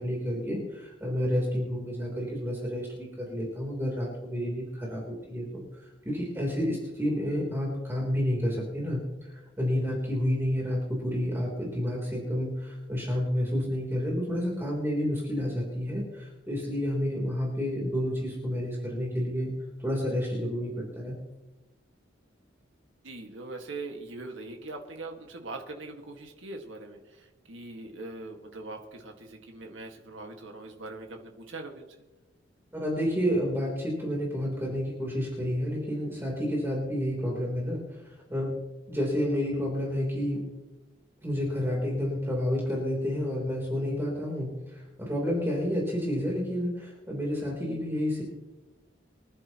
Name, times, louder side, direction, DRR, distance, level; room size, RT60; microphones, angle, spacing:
voice 1, 0.0-5.6 6.0-19.5 19.8-21.1 32.7-38.5 38.9-40.4 41.2-48.2, equal, 10° right, -3 dB, 3.6 m, -30 dB
voice 2, 23.0-31.9, right 2 dB, 85° right, 2 dB, 1.9 m, -41 dB
26.0 x 11.0 x 3.0 m, 1.1 s
head